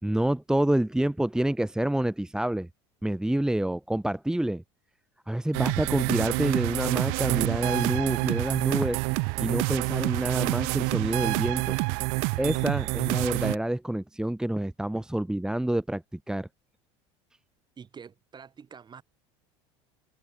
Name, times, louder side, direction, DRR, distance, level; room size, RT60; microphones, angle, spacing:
voice 1, 0.0-2.7 3.0-4.6 5.3-9.0 9.4-11.8 12.4-16.0 16.3-16.5, right 1 dB, 5° right, 1.8 m, -27 dB
sound 1, 5.5-13.6, right 40 dB or more, 70° right, 0.6 m, -27 dB
voice 2, 17.8-19.0, right 6 dB, 30° right, 6.8 m, -46 dB
supercardioid pair, 95°, 15 cm